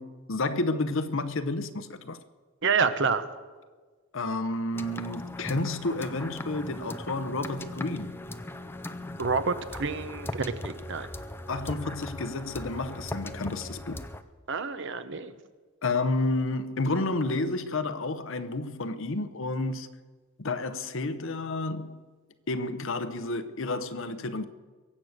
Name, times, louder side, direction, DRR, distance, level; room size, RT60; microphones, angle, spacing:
voice 1, 0.0-2.2 4.1-8.1 11.5-14.0 15.8-19.9 20.4-22.0 22.5-24.4, left 2 dB, 60° left, 0.8 m, -30 dB
voice 2, 2.6-3.2 9.2-11.1 14.5-15.3, right 5 dB, 55° right, 0.8 m, -28 dB
sound 1, 4.7-14.2, left 1 dB, 10° left, 0.5 m, -39 dB
22.5 x 8.1 x 6.5 m
head